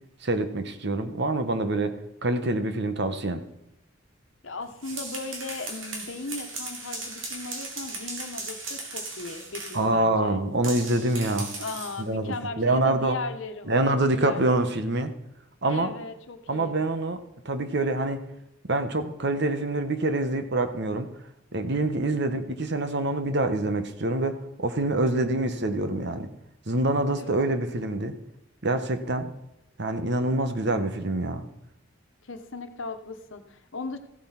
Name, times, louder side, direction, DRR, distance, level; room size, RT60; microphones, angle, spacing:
voice 1, 0.2-3.4 9.7-11.5 12.0-13.2 13.7-15.1 15.6-15.9 16.5-18.3 18.7-21.1 21.5-26.3 26.7-28.1 28.6-29.3 29.8-31.4, right 2 dB, 60° right, 9 dB, 1.2 m, -26 dB
voice 2, 4.4-10.4 11.6-14.4 15.7-16.8 27.2-27.3 32.2-34.0, left 3 dB, 70° left, 7 dB, 1.2 m, -37 dB
sound 1, 4.6-9.9 10.6-12.0, right 3 dB, 80° right, 2.7 m, -37 dB
15.0 x 7.5 x 5.9 m, 0.87 s
head